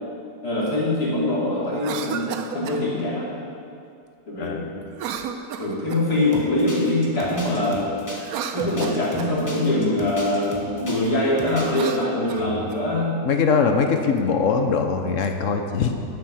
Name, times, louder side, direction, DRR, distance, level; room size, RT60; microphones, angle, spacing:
voice 1, 0.4-3.4 4.3-4.8 5.6-7.9 8.5-13.1, left 1 dB, 75° left, -7 dB, 3.6 m, -23 dB
Cough, 1.7-2.8 4.9-6.2 8.1-9.4 11.6-12.8, right 7 dB, 70° right, 1.1 m, -32 dB
voice 2, 4.4-4.7 12.4-12.7 13.2-15.9, left 5 dB, 55° left, 5 dB, 1.1 m, -22 dB
sound 1, 6.3-11.1 11.4-11.9, left 1 dB, 10° left, 1.3 m, -38 dB
12.0 x 7.4 x 6.4 m, 2.4 s
omnidirectional pair, 1.7 m